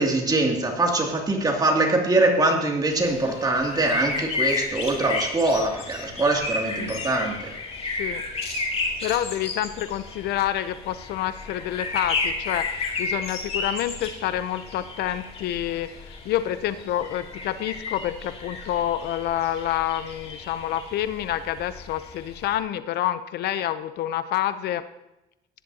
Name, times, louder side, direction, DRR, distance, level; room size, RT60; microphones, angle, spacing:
voice 1, 0.0-7.5, right 2 dB, 25° right, 0 dB, 2.6 m, -23 dB
sound 1, 2.9-22.6, left 3 dB, 35° left, 2.4 m, -33 dB
voice 2, 8.8-24.8, left 12 dB, 75° left, 13 dB, 0.7 m, -28 dB
17.5 x 10.5 x 2.8 m, 0.90 s
cardioid pair, 110°, 17 cm